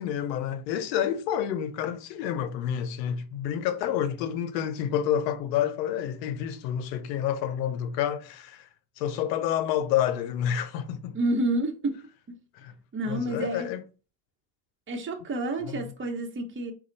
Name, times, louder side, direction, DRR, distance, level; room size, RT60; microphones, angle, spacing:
voice 1, 0.0-8.7 9.0-11.2 12.6-12.7 13.0-13.8 15.7-15.9, left 10 dB, 90° left, 0.7 m, -29 dB
voice 2, 11.1-11.9 12.3-12.4 12.9-13.7 14.9-16.7, right 2 dB, 25° right, 1.0 m, -29 dB
4.2 x 2.3 x 4.0 m
supercardioid pair, 80°, 49 cm